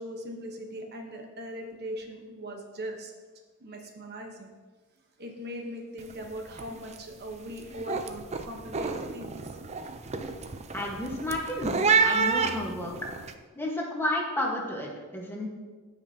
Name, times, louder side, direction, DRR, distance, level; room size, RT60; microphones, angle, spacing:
voice 1, 0.0-3.1 3.6-4.5 5.2-9.6, equal, 50° right, 2 dB, 1.0 m, -40 dB
sound 1, 6.0-6.3 6.5-7.0 7.4-13.3, right 5 dB, 30° right, 0.5 m, -29 dB
voice 2, 10.7-11.8 12.0-12.9 13.6-15.5, left 1 dB, 10° left, -2 dB, 1.2 m, -31 dB
14.5 x 5.3 x 2.8 m, 1.4 s
head